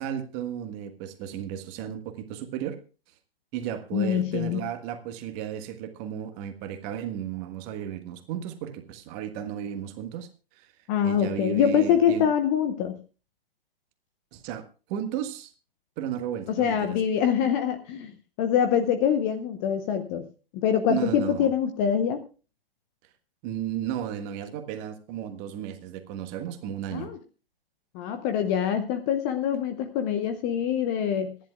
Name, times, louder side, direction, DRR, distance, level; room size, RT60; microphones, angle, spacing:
voice 1, 0.0-2.8 3.5-10.3 10.5-10.7 11.0-12.2 14.3-15.5 16.0-17.0 20.9-21.5 23.4-27.1, right 10 dB, 25° right, 8 dB, 1.5 m, -34 dB
voice 2, 3.9-4.6 10.9-13.0 16.5-18.1 18.4-20.3 20.5-22.2 26.9-27.2 27.9-31.4, left 8 dB, 20° left, 9 dB, 0.8 m, -24 dB
25.5 x 11.0 x 2.3 m, 0.33 s
figure-of-eight pair, 130°, 30 cm